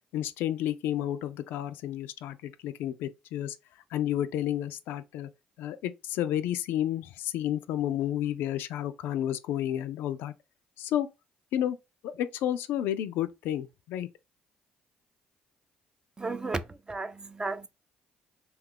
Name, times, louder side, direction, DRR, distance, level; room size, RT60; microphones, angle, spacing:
voice 1, 0.1-3.6 3.9-5.3 5.6-10.3 10.8-11.1 11.5-11.8 12.0-14.1, left 11 dB, 80° left, 0.3 m, -31 dB
voice 2, 16.2-17.7, right 3 dB, 20° right, 0.4 m, -34 dB
2.8 x 2.3 x 3.7 m
supercardioid pair, 80°, 4 cm